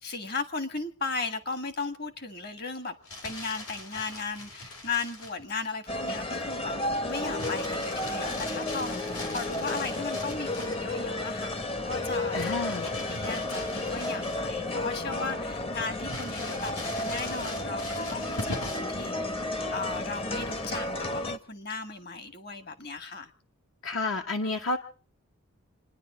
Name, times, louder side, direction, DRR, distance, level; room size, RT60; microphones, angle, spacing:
voice 1, 0.0-2.9 3.2-6.7 7.0-19.4 19.7-23.3, left 4 dB, 45° left, 1.5 m, -36 dB
Crumpling crinkling, 2.9-5.4 7.4-10.9 12.4-14.7 15.1-15.2 16.1-19.0 20.4-20.9, left 2 dB, 90° left, 4.4 m, -41 dB
sound 1, 5.9-21.4, left 2 dB, 25° left, 0.7 m, -32 dB
voice 2, 12.3-12.9 23.8-24.8, left 3 dB, 65° left, 0.9 m, -30 dB
27.5 x 10.5 x 4.9 m
head